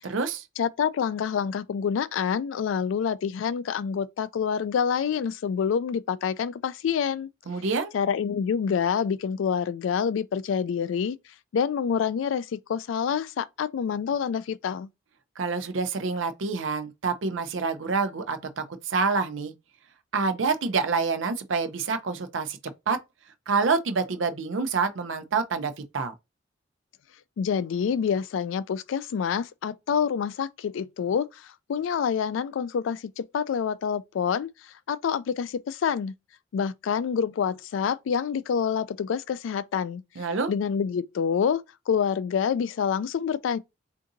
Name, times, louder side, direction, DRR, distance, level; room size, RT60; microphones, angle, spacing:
voice 1, 0.0-0.4 7.5-7.9 15.4-19.5 20.1-22.6 22.9-23.0 23.5-26.1 40.2-40.5, right 4 dB, 90° right, 0.6 m, -27 dB
voice 2, 0.6-7.3 7.9-11.2 11.5-14.9 27.4-36.1 36.5-40.0 40.5-43.6, left 7 dB, 90° left, 0.3 m, -27 dB
3.7 x 2.6 x 2.6 m
head